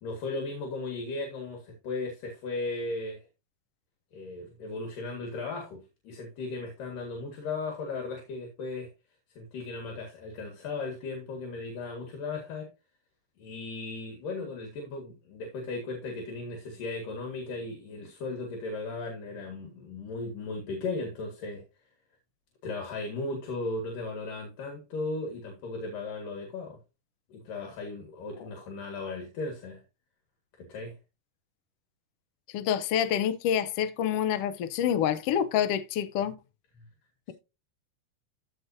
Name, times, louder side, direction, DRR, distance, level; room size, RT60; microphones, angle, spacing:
voice 1, 0.0-3.2 4.1-8.9 9.4-12.7 13.4-21.6 22.6-26.8 27.3-29.8 30.7-31.0, left 3 dB, 75° left, 3.4 m, -36 dB
voice 2, 32.5-36.3, left 9 dB, 90° left, 1.3 m, -27 dB
14.5 x 5.1 x 2.7 m
omnidirectional pair, 3.9 m